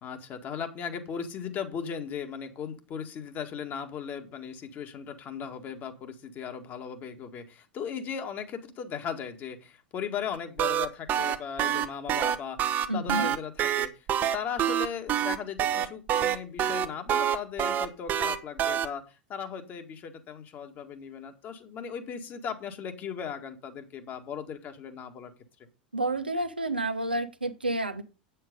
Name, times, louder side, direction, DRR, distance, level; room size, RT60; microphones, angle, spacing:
voice 1, 0.0-13.9 14.2-25.3, left 7 dB, 35° left, 6 dB, 1.9 m, -37 dB
sound 1, 10.3-18.9, right 10 dB, 35° right, 0.9 m, -26 dB
voice 2, 12.9-13.3 25.9-28.0, right 2 dB, 85° right, 8 dB, 1.0 m, -30 dB
8.8 x 7.7 x 5.3 m, 0.31 s
figure-of-eight pair, 85°, 5 cm